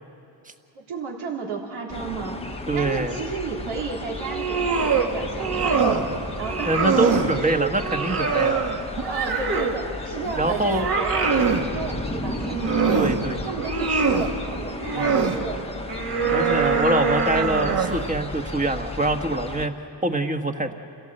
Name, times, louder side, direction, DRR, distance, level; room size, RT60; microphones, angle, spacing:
voice 1, 0.7-6.1 6.4-7.7 8.9-11.3 11.7-15.6, right 5 dB, 80° right, -2 dB, 3.7 m, -33 dB
sound 1, 1.9-19.7, left 2 dB, 10° left, 1.1 m, -34 dB
voice 2, 2.7-3.2 6.7-8.6 10.4-10.8 12.9-13.6 15.0-15.2 16.3-19.7 20.0-20.7, right 2 dB, 15° right, 6 dB, 1.4 m, -24 dB
sound 2, 4.2-5.1 5.4-6.1 6.4-7.3 7.8-9.8 10.2-11.6 12.3-13.2 13.6-14.3 14.8-15.4 15.9-18.0, right 5 dB, 50° right, 2.3 m, -23 dB
28.5 x 16.5 x 7.8 m, 2.8 s
cardioid pair, 100°, 49 cm